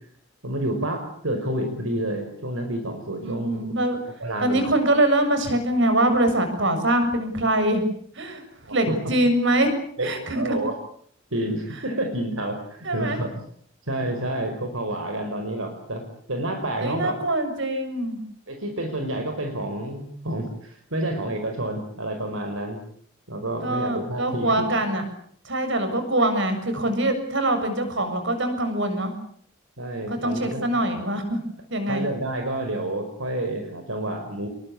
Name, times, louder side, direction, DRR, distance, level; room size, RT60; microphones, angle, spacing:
voice 1, 0.4-3.8 4.2-4.8 8.6-9.0 10.0-10.7 11.3-13.5 13.9-16.0 16.3-17.1 18.5-22.8 23.3-24.7 29.8-30.7 31.9-34.5, right 1 dB, 80° right, 5 dB, 5.2 m, -29 dB
voice 2, 3.2-4.0 4.4-7.8 8.2-8.4 8.7-9.7 10.0-10.6 12.9-13.2 16.8-18.2 23.6-25.0 25.5-29.1 30.1-31.4 31.7-32.1, right 1 dB, 60° right, 8 dB, 7.3 m, -23 dB
28.0 x 22.5 x 8.6 m, 0.63 s
head